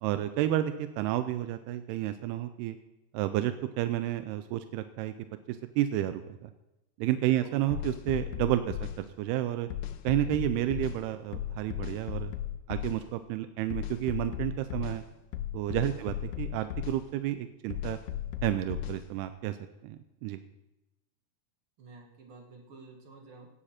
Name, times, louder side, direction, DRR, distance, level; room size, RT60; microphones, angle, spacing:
voice 1, 0.0-2.8 3.1-5.1 5.5-6.5 7.0-9.7 10.0-12.3 12.7-15.0 15.5-18.0 18.4-19.6 19.8-20.4, right 13 dB, 90° right, 10 dB, 2.6 m, -31 dB
sound 1, 7.7-9.0 9.7-11.0 11.3-13.0 13.7-15.0 15.3-17.0 17.7-19.0, left 11 dB, 90° left, 1.7 m, -35 dB
voice 2, 21.8-23.5, right 3 dB, 60° right, 2 dB, 1.4 m, -50 dB
16.0 x 9.9 x 4.3 m, 0.95 s
omnidirectional pair, 4.5 m